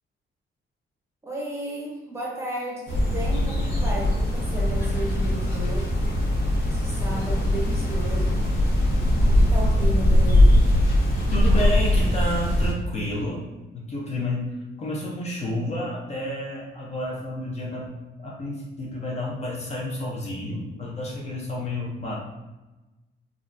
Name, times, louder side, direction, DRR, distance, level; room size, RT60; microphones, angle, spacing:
voice 1, 1.2-6.1 6.7-8.5 9.3-10.5, right 1 dB, 15° right, -4 dB, 0.7 m, -34 dB
sound 1, 2.9-12.7, left 1 dB, 65° left, 0.9 m, -21 dB
voice 2, 11.3-13.4 13.7-14.5 14.8-17.9 18.2-22.2, left 1 dB, 35° left, -4 dB, 0.5 m, -30 dB
3.6 x 2.2 x 2.4 m, 1.1 s
cardioid pair, 160°, 21 cm